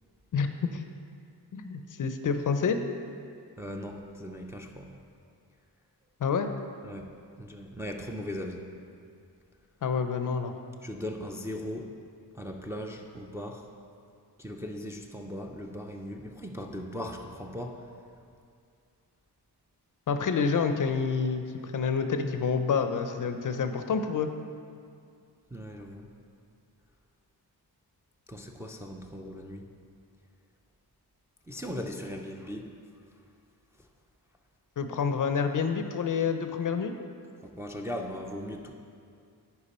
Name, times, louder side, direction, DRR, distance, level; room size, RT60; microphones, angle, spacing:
voice 1, 0.3-0.8 1.5-2.8 6.2-6.5 9.8-10.5 20.1-24.3 34.8-36.9, left 5 dB, 50° left, 7 dB, 0.5 m, -28 dB
voice 2, 3.6-4.9 6.8-7.1 7.4-8.6 10.8-11.9 12.3-13.7 14.4-17.8 25.5-26.1 28.3-29.7 31.5-32.7 37.4-38.7, equal, 5° right, 1 dB, 0.4 m, -38 dB
10.0 x 4.7 x 4.2 m, 2.3 s
wide cardioid pair, 140°, 40 cm